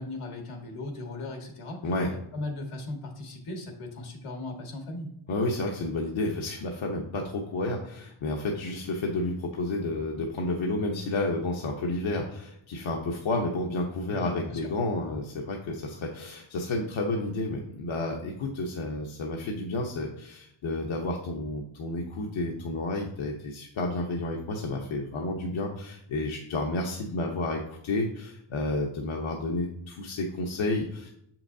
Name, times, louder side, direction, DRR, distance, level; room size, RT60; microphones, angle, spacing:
voice 1, 0.0-1.9 2.3-5.1 14.1-14.7, left 2 dB, 85° left, 3 dB, 1.8 m, -37 dB
voice 2, 5.3-31.1, left 2 dB, 65° left, 0 dB, 1.0 m, -31 dB
6.7 x 5.8 x 2.7 m, 0.76 s
cardioid pair, 100°, 50 cm